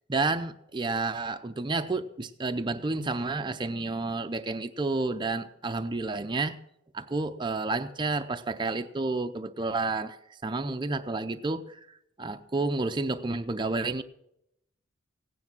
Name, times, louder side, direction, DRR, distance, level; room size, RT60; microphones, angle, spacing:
voice 1, 0.1-6.6 6.9-10.2 10.4-14.0, right 3 dB, 20° right, 0.5 m, -30 dB
16.5 x 9.7 x 6.0 m
head